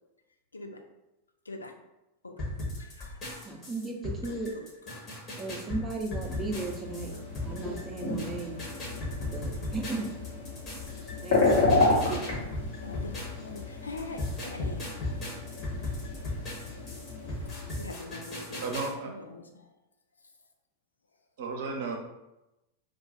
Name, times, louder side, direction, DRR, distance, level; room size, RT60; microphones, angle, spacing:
sound 1, 2.4-13.6 14.0-18.9, left 1 dB, 30° left, 1.1 m, -37 dB
voice 1, 2.8-3.4 4.2-5.0 12.3-15.4 16.2-16.3 16.6-17.0 17.3-17.5 17.8-18.7 19.0-19.8 20.2-20.3, left 3 dB, 75° left, 3 dB, 0.4 m, -44 dB
voice 2, 3.4-4.5 5.4-7.1 7.4-8.6 9.3-10.1 11.2-12.3, right 3 dB, 15° right, 1 dB, 0.6 m, -35 dB
sound 2, 6.2-17.8, left 3 dB, 60° left, 1.2 m, -31 dB
voice 3, 18.6-19.1 21.4-22.0, right 4 dB, 55° right, 2 dB, 0.6 m, -33 dB
2.4 x 2.3 x 3.9 m, 0.94 s
figure-of-eight pair, 90°, 0 cm